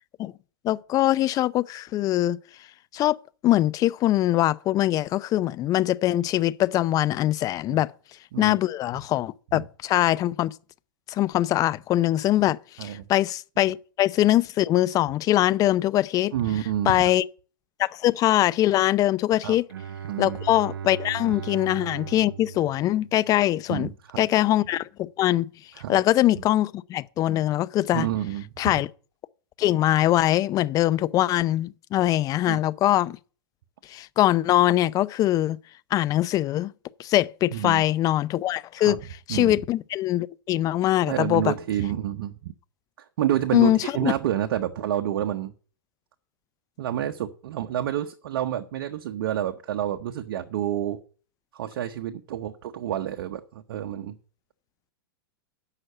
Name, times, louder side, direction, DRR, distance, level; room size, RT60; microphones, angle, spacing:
voice 1, 0.6-2.4 2.9-3.2 3.4-7.9 8.4-10.5 11.1-16.3 16.9-17.2 17.8-19.6 20.2-23.9 24.2-25.5 25.9-28.1 28.6-28.9 29.6-33.2 33.9-35.6 35.9-36.7 37.0-39.0 39.3-41.5 43.5-44.1, left 14 dB, 30° left, 0.5 m, -22 dB
voice 2, 16.3-17.1 19.4-19.6 20.1-20.4 23.7-24.2 25.7-26.0 27.9-28.8 32.5-32.6 37.5-37.8 38.8-39.0 39.3-39.6 41.1-42.5 43.0-45.5 46.8-51.0 51.5-54.1, right 11 dB, 65° right, 0.8 m, -29 dB
Bowed string instrument, 19.7-23.6, right 8 dB, 85° right, 0.4 m, -38 dB
8.0 x 5.8 x 7.8 m
hypercardioid pair, 115°, 12 cm